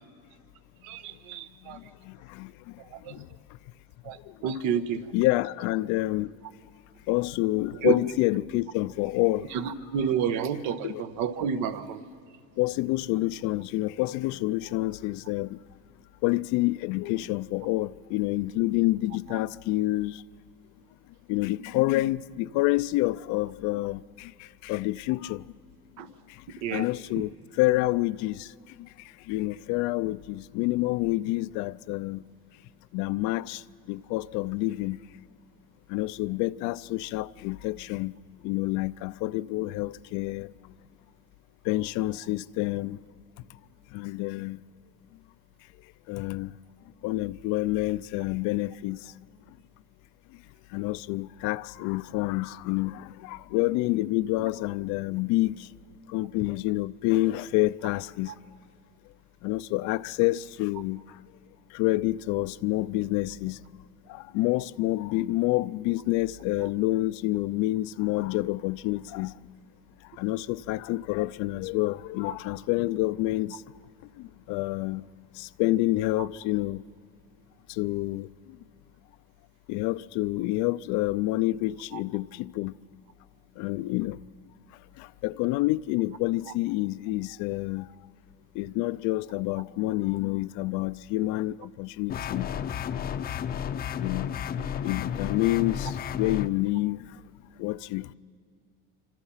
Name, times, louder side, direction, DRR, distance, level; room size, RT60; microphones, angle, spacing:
voice 1, 0.8-1.8 2.9-3.1 4.0-5.0 7.8-7.9 9.5-12.0 26.0-26.1 26.6-26.9, right 8 dB, 75° right, 1.4 m, -29 dB
voice 2, 2.1-2.5 3.1-3.3 5.1-6.3 7.1-9.5 10.8-11.0 12.6-15.6 16.2-20.2 21.3-24.3 24.6-25.4 26.7-27.3 27.6-28.5 28.8-28.9 29.3-32.2 32.9-33.6 33.9-35.0 35.9-38.1 38.4-40.5 41.7-43.0 43.9-44.6 46.1-46.5 47.0-49.0 50.7-55.6 56.1-58.3 59.4-61.0 61.7-63.6 64.1-69.3 70.2-73.6 74.2-75.0 75.4-76.8 77.7-78.3 79.7-82.7 83.6-84.2 85.0-87.9 88.6-92.5 93.1-93.2 94.0-94.3 94.8-97.0 97.6-98.1, left 18 dB, 75° left, 0.6 m, -28 dB
sound 1, 92.1-96.5, left 8 dB, 30° left, 0.6 m, -32 dB
27.0 x 25.5 x 5.7 m
cardioid pair, 160°, 29 cm